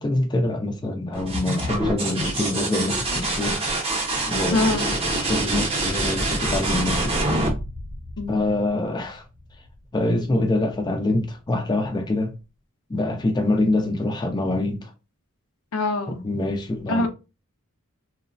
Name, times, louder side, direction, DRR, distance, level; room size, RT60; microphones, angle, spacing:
voice 1, 0.0-3.6 4.3-7.2 8.3-9.2 9.9-12.3 12.9-14.9 16.1-17.1, left 2 dB, 20° left, 0.4 m, -25 dB
sound 1, 1.1-8.7 10.5-11.1, right 2 dB, 25° right, 0.7 m, -26 dB
voice 2, 4.5-4.9 8.2-8.4 15.7-16.2 16.9-17.1, left 2 dB, 75° left, 0.6 m, -24 dB
3.1 x 2.0 x 2.5 m
head